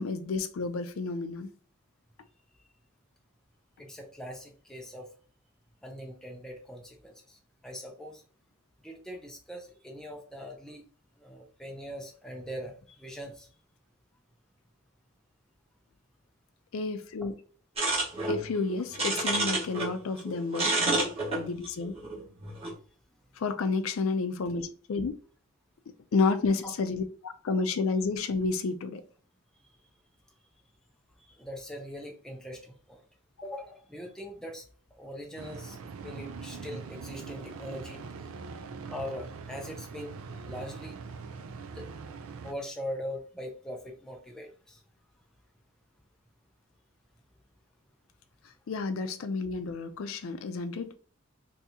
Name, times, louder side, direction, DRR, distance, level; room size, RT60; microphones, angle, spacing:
voice 1, 0.0-1.5 16.7-17.3 18.3-21.9 23.4-25.1 26.1-29.0 48.7-50.9, left 4 dB, 80° left, 0.4 m, -30 dB
voice 2, 3.8-5.1 5.8-8.2 8.8-10.8 11.2-13.5 20.7-20.8 26.6-26.7 31.2-33.0 33.4-34.6 35.0-38.0 38.9-40.1 40.4-41.0 41.7-41.9 42.4-44.8, equal, 5° left, 0.4 m, -41 dB
sound 1, 17.8-19.9 20.2-22.7, right 2 dB, 30° right, 1.1 m, -29 dB
sound 2, 35.4-42.5, right 5 dB, 85° right, 0.4 m, -42 dB
2.7 x 2.7 x 3.5 m
head